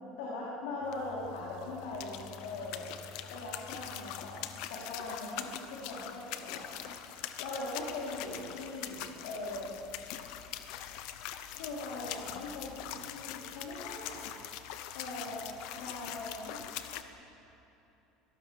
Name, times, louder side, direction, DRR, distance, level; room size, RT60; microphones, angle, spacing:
voice 1, 0.2-2.9 3.3-6.9 7.4-9.7 11.5-14.2 14.9-16.6, left 2 dB, 80° left, -5 dB, 4.5 m, -40 dB
sound 1, 0.8-17.0, left 11 dB, 60° left, 1.1 m, -43 dB
23.5 x 18.0 x 7.2 m, 2.9 s
cardioid pair, 175°, 0 cm